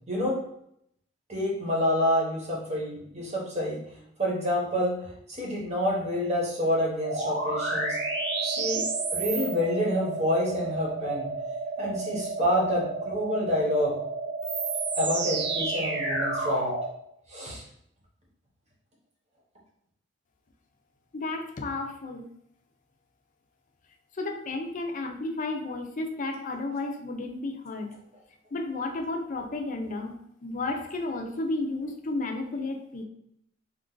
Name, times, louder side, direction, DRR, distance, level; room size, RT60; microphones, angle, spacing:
voice 1, 0.1-0.4 1.3-3.8 4.2-8.0 8.4-8.8 9.1-11.3 11.8-14.0 14.9-16.7 17.3-17.6, equal, 35° right, -3 dB, 1.0 m, -28 dB
sound 1, 7.0-16.9, right 3 dB, 65° right, 0.6 m, -31 dB
voice 2, 21.1-22.3 24.1-27.9 28.5-30.2 30.4-33.0, left 2 dB, 45° left, 3 dB, 0.5 m, -32 dB
2.9 x 2.4 x 3.7 m, 0.73 s
head